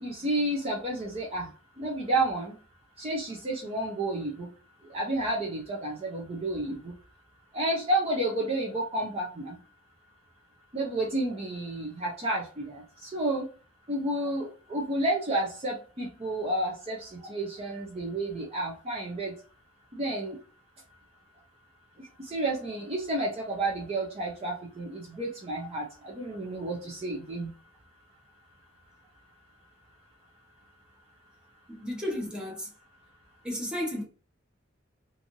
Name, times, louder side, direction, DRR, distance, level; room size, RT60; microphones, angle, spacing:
voice 1, 0.0-1.5 1.8-2.6 3.0-4.5 4.9-6.9 7.5-9.6 10.7-13.5 13.9-19.3 19.9-20.4 22.0-27.5, right 1 dB, 30° right, 0.6 m, -31 dB
voice 2, 31.7-32.7 33.4-34.0, left 1 dB, 5° right, 0.9 m, -33 dB
2.6 x 2.5 x 2.9 m
head